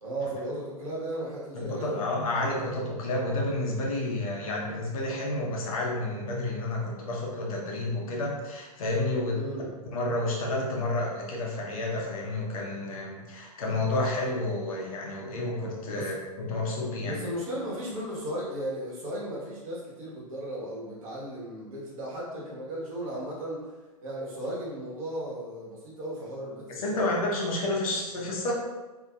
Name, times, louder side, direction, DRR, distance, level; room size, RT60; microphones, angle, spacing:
voice 1, 0.0-2.0 9.2-9.7 15.9-16.1 16.8-23.7 24.0-27.1, right 1 dB, 60° right, -5 dB, 1.2 m, -36 dB
voice 2, 1.5-9.4 9.9-17.2 26.8-28.5, left 2 dB, 65° left, -2 dB, 0.8 m, -30 dB
2.8 x 2.6 x 2.3 m, 1.2 s
hypercardioid pair, 115°, 19 cm